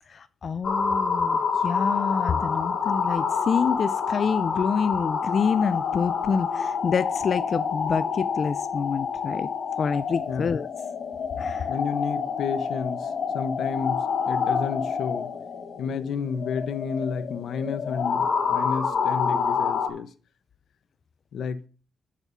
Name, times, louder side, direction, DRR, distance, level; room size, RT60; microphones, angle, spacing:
voice 1, 0.1-9.5 9.8-10.7 11.4-11.7, left 6 dB, 45° left, 0.3 m, -27 dB
sound 1, 0.6-19.9, left 6 dB, 65° left, 1.8 m, -27 dB
voice 2, 10.3-10.6 11.7-15.3 15.8-20.1 21.3-21.6, left 6 dB, 85° left, 0.9 m, -31 dB
7.3 x 5.7 x 6.7 m
wide cardioid pair, 170°, 0 cm